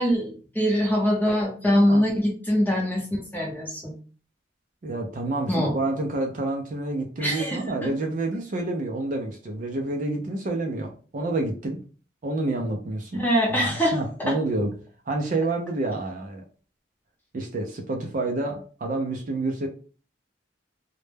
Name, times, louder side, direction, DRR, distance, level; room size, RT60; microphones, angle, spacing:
voice 1, 0.0-3.9 5.5-5.7 7.2-7.9 13.1-14.3, equal, 10° left, -2 dB, 0.6 m, -23 dB
voice 2, 4.8-11.8 12.2-14.7 15.1-16.4 17.3-19.7, right 2 dB, 40° right, 3 dB, 0.4 m, -28 dB
2.1 x 2.1 x 3.2 m, 0.39 s
head